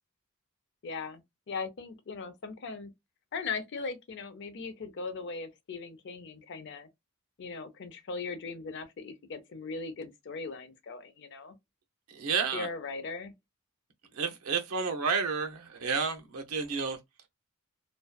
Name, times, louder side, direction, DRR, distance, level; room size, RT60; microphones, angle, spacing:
voice 1, 0.8-2.9 3.3-6.9 7.4-11.5 12.5-13.3, left 4 dB, 55° left, 0.5 m, -39 dB
voice 2, 12.1-12.7 14.1-17.0, right 5 dB, 90° right, 0.6 m, -31 dB
2.6 x 2.2 x 2.2 m
head